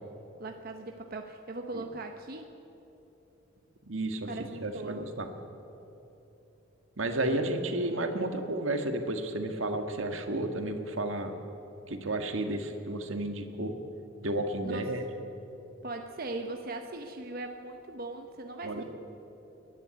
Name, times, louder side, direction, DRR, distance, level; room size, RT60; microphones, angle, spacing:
voice 1, 0.4-2.5 4.3-5.0 7.2-7.4 14.6-14.9 15.8-18.8, right 2 dB, 50° right, 4 dB, 1.0 m, -39 dB
voice 2, 3.9-4.3 4.6-5.3 7.0-11.3 11.9-13.8 14.2-15.0 18.6-18.8, right 1 dB, 80° right, 5 dB, 1.8 m, -32 dB
29.0 x 11.0 x 8.3 m, 3.0 s
head